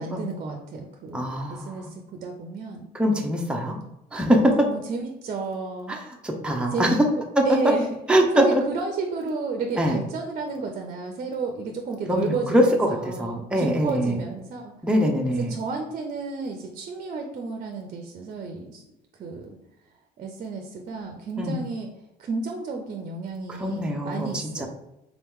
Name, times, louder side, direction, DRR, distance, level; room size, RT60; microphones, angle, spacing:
voice 1, 0.0-2.9 4.6-6.0 6.7-7.9 8.3-14.7 15.4-18.8 19.2-19.6 20.2-21.9 22.2-24.7, right 4 dB, 45° right, 4 dB, 0.6 m, -32 dB
voice 2, 1.1-1.9 2.9-3.8 4.1-4.7 5.9-6.0 6.2-6.9 7.4-7.7 8.1-8.6 9.8-10.0 12.1-14.2 14.8-15.6 21.4-21.6 23.6-24.7, equal, 5° right, 0 dB, 0.6 m, -23 dB
3.9 x 2.9 x 3.6 m, 0.89 s
cardioid pair, 110°, 17 cm